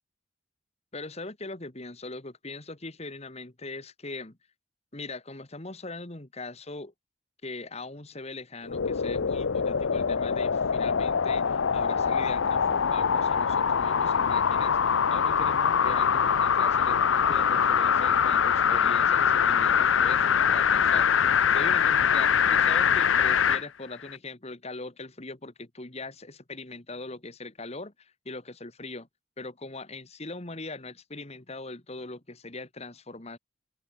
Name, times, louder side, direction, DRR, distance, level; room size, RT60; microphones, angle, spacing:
voice 1, 0.9-4.4 4.9-6.9 7.4-29.1 29.4-33.4, left 3 dB, 35° left, 1.9 m, -41 dB
sound 1, 8.7-23.6 24.1-24.2, left 7 dB, 80° left, 0.6 m, -23 dB
open air
head